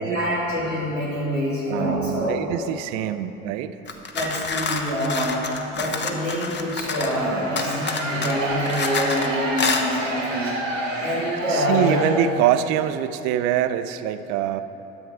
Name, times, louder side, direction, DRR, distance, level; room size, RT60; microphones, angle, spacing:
voice 1, 0.0-2.4 4.1-5.4 5.7-10.5 11.0-12.1, equal, 90° left, -7 dB, 2.6 m, -26 dB
voice 2, 1.7-3.8 11.3-14.6, right 11 dB, 55° right, 12 dB, 0.6 m, -24 dB
sound 1, 3.9-7.2 7.6-9.3 9.6-9.9, left 4 dB, 30° left, 1.0 m, -28 dB
sound 2, 6.8-12.7, right 1 dB, 90° right, 1.4 m, -29 dB
12.5 x 8.0 x 4.8 m, 2.9 s
figure-of-eight pair, 60°, 38 cm